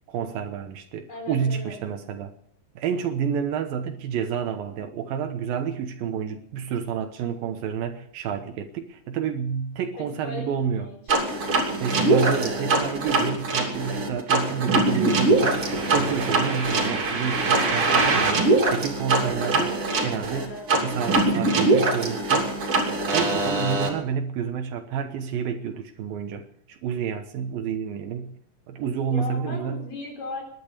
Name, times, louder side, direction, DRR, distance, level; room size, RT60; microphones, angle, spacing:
voice 1, 0.1-2.3 2.8-10.9 11.8-22.5 23.1-28.4 28.7-29.9, right 7 dB, 80° right, 2.9 m, -29 dB
voice 2, 1.1-1.8 10.0-11.3 20.3-20.7 29.1-30.4, left 3 dB, 65° left, 5.6 m, -37 dB
sound 1, 11.1-23.9, right 2 dB, 40° right, 3.5 m, -23 dB
19.5 x 11.0 x 6.7 m
omnidirectional pair, 4.1 m